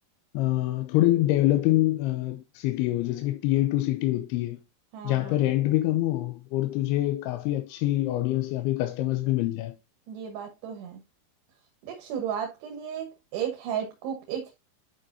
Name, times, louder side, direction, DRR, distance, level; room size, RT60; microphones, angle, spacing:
voice 1, 0.3-4.6 5.0-9.8, left 15 dB, 85° left, 2.6 m, -25 dB
voice 2, 4.9-5.4 10.1-11.0 11.8-14.5, right 8 dB, 85° right, 3.5 m, -34 dB
11.0 x 5.2 x 2.6 m
omnidirectional pair, 4.7 m